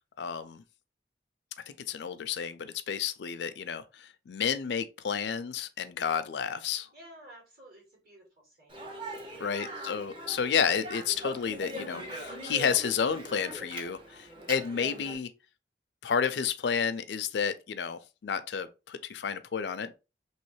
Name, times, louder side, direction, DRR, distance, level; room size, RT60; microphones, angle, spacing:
voice 1, 0.2-0.6 1.7-6.9 9.4-15.3 16.0-20.0, left 7 dB, 75° left, 0.4 m, -31 dB
voice 2, 6.9-8.9 9.4-9.7, right 1 dB, 55° right, 1.8 m, -53 dB
Speech, 8.7-15.2, right 1 dB, 30° right, 0.7 m, -41 dB
3.1 x 2.9 x 3.1 m
head